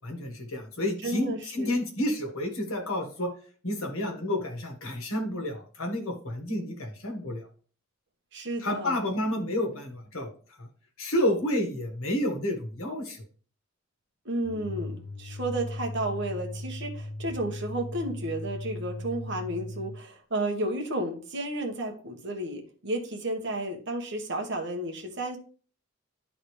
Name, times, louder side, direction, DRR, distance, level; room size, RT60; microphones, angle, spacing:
voice 1, 0.0-3.3 3.6-7.4 8.6-10.3 10.6-10.7 11.0-13.2, left 1 dB, 80° left, 2 dB, 1.6 m, -30 dB
voice 2, 1.0-1.7 8.3-9.0 14.2-25.4, right 1 dB, 55° right, 2 dB, 1.4 m, -32 dB
sound 1, 14.4-20.1, left 1 dB, 60° left, 0.7 m, -38 dB
11.5 x 3.9 x 3.2 m, 0.43 s
head